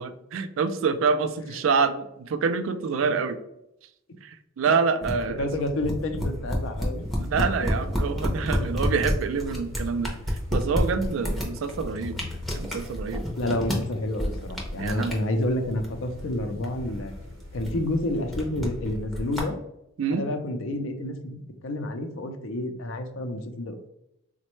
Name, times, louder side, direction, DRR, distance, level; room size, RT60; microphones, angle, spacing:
voice 1, 0.0-3.4 4.2-5.7 7.2-12.2 12.5-13.3 14.8-15.1 20.0-20.3, right 5 dB, 75° right, 10 dB, 0.3 m, -27 dB
sound 1, 5.0-19.4, equal, ahead, 0.6 m, -30 dB
voice 2, 5.4-7.5 8.5-8.7 11.1-11.3 13.4-17.1 17.5-19.6 20.1-23.9, left 1 dB, 70° left, 7 dB, 0.5 m, -29 dB
sound 2, 7.0-18.7, left 3 dB, 50° right, 0.9 m, -46 dB
4.1 x 2.1 x 3.0 m, 0.82 s
head